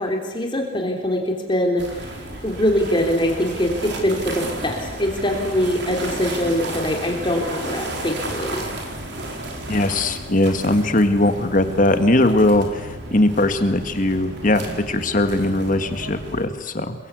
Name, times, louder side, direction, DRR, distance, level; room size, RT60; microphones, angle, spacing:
voice 1, 0.0-1.8 2.4-8.6, left 1 dB, 25° left, 2 dB, 3.3 m, -23 dB
sound 1, 1.8-16.5, right 1 dB, 60° right, 4.6 m, -33 dB
voice 2, 9.7-16.9, left 1 dB, 40° left, 8 dB, 1.9 m, -20 dB
29.0 x 23.0 x 8.3 m, 1.1 s
head